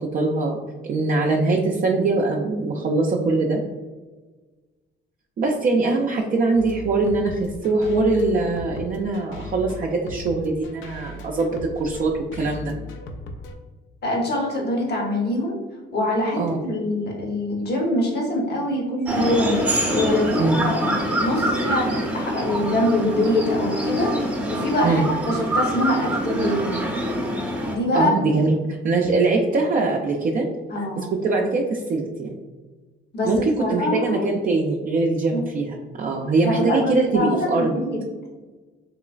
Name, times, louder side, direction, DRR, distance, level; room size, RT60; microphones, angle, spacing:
voice 1, 0.1-0.6 0.8-3.6 5.4-12.7 16.3-16.6 20.4-20.5 24.8-25.1 27.9-30.5 30.8-32.4 33.2-33.4 33.7-37.7, right 3 dB, 45° right, -1 dB, 0.4 m, -22 dB
sound 1, 6.5-13.5, left 3 dB, 75° left, 0.5 m, -37 dB
voice 2, 14.0-15.6 15.9-19.6 19.9-26.8 27.7-28.1 30.7-31.2 33.1-34.3 35.3-35.4 36.4-36.8 37.1-38.0, left 1 dB, 55° left, -1 dB, 0.9 m, -24 dB
sound 2, 19.1-27.8, right 1 dB, 5° right, 0.6 m, -25 dB
3.1 x 3.0 x 2.4 m, 1.3 s
cardioid pair, 90°, 20 cm